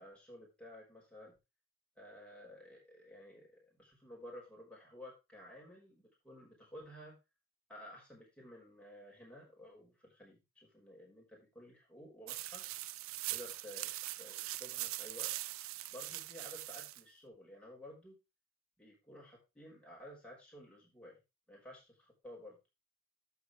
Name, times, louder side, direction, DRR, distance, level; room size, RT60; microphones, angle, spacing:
voice 1, 0.0-1.4 2.0-7.2 7.7-11.2 11.5-12.6 13.3-13.9 14.2-15.3 15.9-18.2 18.8-21.2 21.5-22.6, left 1 dB, 5° left, -3 dB, 6.0 m, -53 dB
sound 1, 12.3-17.0, right 17 dB, 80° right, 0.5 m, -42 dB
11.5 x 8.1 x 3.4 m, 0.26 s
head